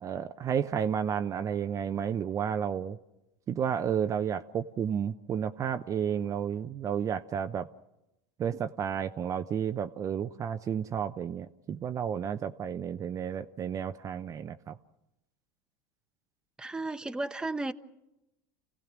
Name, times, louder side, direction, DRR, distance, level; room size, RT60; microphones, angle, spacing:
voice 1, 0.0-3.0 3.5-7.7 8.4-14.8, right 8 dB, 35° right, 0.7 m, -32 dB
voice 2, 16.6-17.7, right 2 dB, 10° right, 0.9 m, -34 dB
29.0 x 16.5 x 6.1 m
supercardioid pair, 110°, 10 cm